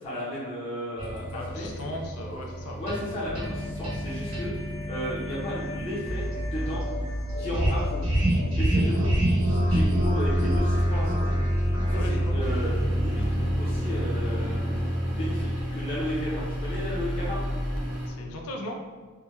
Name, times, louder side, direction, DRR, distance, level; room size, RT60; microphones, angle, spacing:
voice 1, 0.0-1.2 1.5-1.7 2.8-4.5 4.9-6.8 7.4-8.0 8.5-9.1 9.4-11.4 11.8-13.2 13.6-14.7 15.1-17.4, equal, 25° left, -9 dB, 0.7 m, -34 dB
sound 1, 1.0-15.5, equal, 80° right, 1.4 m, -27 dB
voice 2, 1.3-2.8 11.9-12.4 18.1-18.8, left 1 dB, 80° left, 1 dB, 0.5 m, -37 dB
sound 2, 6.1-17.8, equal, 20° right, 0.3 m, -34 dB
sound 3, 12.4-18.1, equal, 35° right, 0.8 m, -34 dB
3.3 x 2.2 x 3.1 m, 1.5 s
head